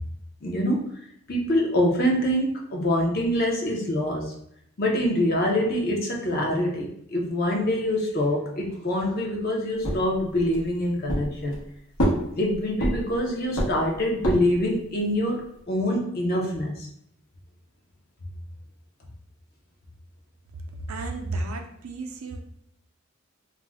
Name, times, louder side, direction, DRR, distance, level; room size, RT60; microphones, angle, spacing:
voice 1, 0.4-0.9 1.3-4.3 4.8-11.6 12.3-16.9, left 1 dB, 45° left, 0 dB, 0.6 m, -25 dB
sound 1, 9.8-10.7 11.1-11.7 12.0-13.2 13.6-14.6, equal, 85° left, 0.9 m, -26 dB
voice 2, 20.9-22.4, right 2 dB, 80° right, 4 dB, 0.5 m, -32 dB
2.4 x 2.1 x 3.4 m, 0.74 s
head